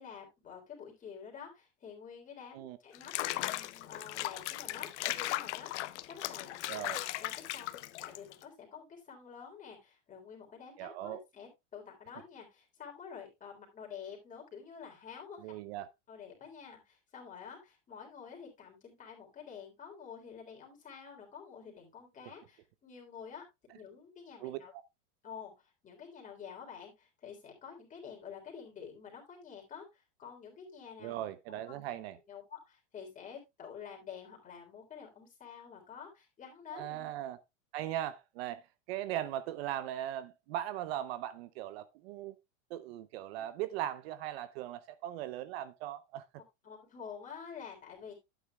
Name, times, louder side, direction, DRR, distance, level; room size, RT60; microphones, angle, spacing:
voice 1, 0.0-15.5 16.1-23.4 23.7-24.7 25.2-32.0 32.3-37.1 43.3-43.4 46.6-48.1, left 7 dB, 20° left, 3.5 m, -49 dB
Water / Bathtub (filling or washing), 2.9-8.4, left 16 dB, 70° left, 0.8 m, -37 dB
voice 2, 6.7-7.0 10.8-11.2 15.4-15.9 24.4-24.6 31.0-32.2 36.7-37.4 37.7-42.4 42.7-46.3, right 12 dB, 55° right, 0.7 m, -39 dB
11.5 x 9.3 x 2.3 m
supercardioid pair, 150°, 36 cm